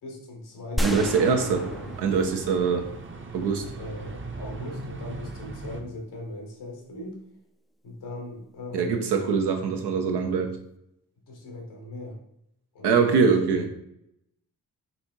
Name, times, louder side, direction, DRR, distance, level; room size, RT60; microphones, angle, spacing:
voice 1, 0.0-2.0 3.6-7.2 7.8-9.0 11.3-12.2 12.7-13.7, left 1 dB, 90° left, 0 dB, 1.3 m, -39 dB
sound 1, 0.8-3.1, equal, ahead, 0.3 m, -33 dB
sound 2, 0.8-5.8, right 3 dB, 30° right, 0.7 m, -39 dB
voice 2, 0.8-1.7 2.0-2.9 3.3-3.6 8.7-10.6 12.8-13.7, right 5 dB, 85° right, 5 dB, 0.8 m, -23 dB
4.3 x 2.7 x 4.4 m, 0.77 s
supercardioid pair, 45°, 39 cm